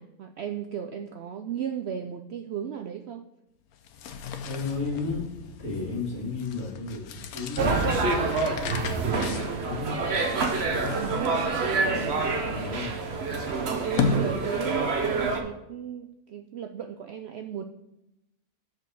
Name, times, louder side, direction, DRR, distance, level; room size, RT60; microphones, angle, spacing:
voice 1, 0.0-3.2 5.9-6.1 9.1-9.5 10.9-11.4 13.6-17.6, right 8 dB, 65° right, 6 dB, 0.6 m, -35 dB
sound 1, 3.7-14.9, left 5 dB, 90° left, 1.2 m, -36 dB
voice 2, 4.4-5.3 5.6-8.1 9.6-9.9 11.7-12.9, left 3 dB, 65° left, -3 dB, 3.1 m, -33 dB
sound 2, 7.6-15.4, right 3 dB, 50° right, 1.2 m, -27 dB
6.6 x 5.2 x 6.2 m, 0.88 s
omnidirectional pair, 1.5 m